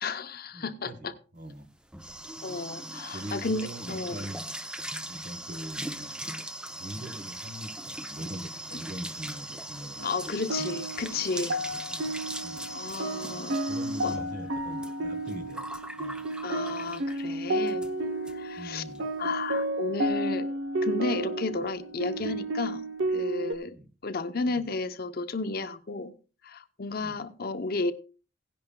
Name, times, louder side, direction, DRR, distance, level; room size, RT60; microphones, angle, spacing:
voice 1, 0.0-1.1 2.4-4.2 10.0-11.6 12.7-13.6 14.0-14.2 16.4-17.8 18.3-18.8 19.2-20.5 20.8-22.8 23.1-23.8 24.0-26.1 26.4-27.9, left 3 dB, 50° left, 0.7 m, -33 dB
voice 2, 0.5-1.7 2.4-2.6 3.1-4.4 5.1-6.1 6.7-10.1 10.6-10.8 11.9-12.1 12.4-12.7 13.7-15.7 16.0-16.3 18.6-19.1 21.5-21.7 22.2-22.4 23.6-23.9 24.4-24.7 27.0-27.2, right 1 dB, 40° right, 1.0 m, -42 dB
sound 1, 1.5-17.3 17.7-17.9 18.3-18.4 18.6-19.0, right 1 dB, 5° right, 0.5 m, -40 dB
sound 2, 10.0-23.5, right 1 dB, 80° right, 0.7 m, -32 dB
16.5 x 10.5 x 2.2 m
head